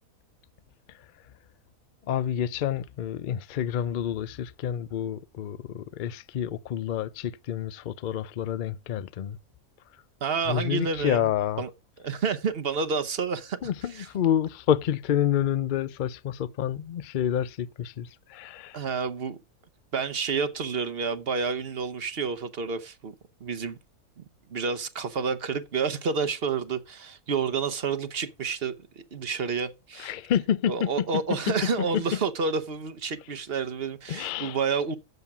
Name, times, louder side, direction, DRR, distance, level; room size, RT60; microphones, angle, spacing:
voice 1, 2.1-9.4 10.5-11.6 13.6-18.8 30.0-30.9 31.5-31.6 31.9-32.0 34.1-34.6, left 10 dB, 70° left, 0.4 m, -28 dB
voice 2, 10.2-11.3 11.6-11.7 12.0-14.1 18.7-19.4 19.9-23.1 23.4-23.8 24.2-24.3 24.5-28.7 29.1-30.2 30.7-35.0, right 5 dB, 45° right, 1.0 m, -29 dB
8.0 x 7.2 x 5.9 m
omnidirectional pair, 1.5 m